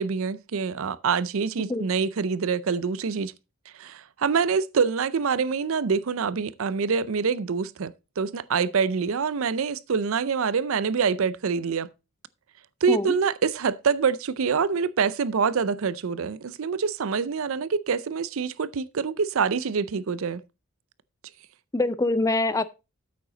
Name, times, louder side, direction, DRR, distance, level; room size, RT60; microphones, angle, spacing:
voice 1, 0.0-3.3 3.8-11.9 12.8-20.4, right 5 dB, 65° right, 0.5 m, -25 dB
voice 2, 21.7-22.7, left 2 dB, 15° left, 0.4 m, -24 dB
8.9 x 7.6 x 3.9 m
head